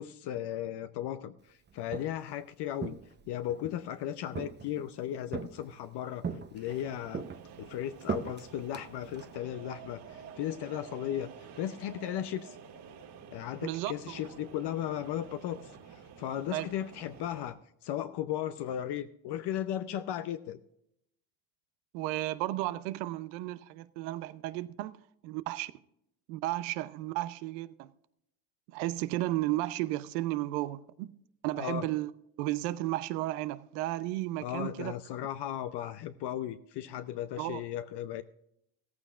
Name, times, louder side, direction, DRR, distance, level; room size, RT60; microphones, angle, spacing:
voice 1, 0.0-3.0 3.2-6.2 6.5-7.3 7.6-12.6 13.3-20.6 31.6-31.9 34.4-38.2, left 11 dB, 55° left, 0.7 m, -36 dB
Walk footsteps, 1.7-2.3 2.8-3.8 4.4-4.9 5.3-5.9 6.2-6.8 7.1-9.4, right 6 dB, 20° right, 0.8 m, -39 dB
sound 1, 6.7-17.5, right 6 dB, 55° right, 2.1 m, -50 dB
voice 2, 13.6-14.1 16.5-16.7 21.9-25.0 25.2-25.7 26.3-27.9 28.7-31.2 31.4-32.1 32.4-34.9 37.4-37.6, right 16 dB, 85° right, 0.8 m, -33 dB
15.0 x 14.5 x 2.5 m
supercardioid pair, 95°, 49 cm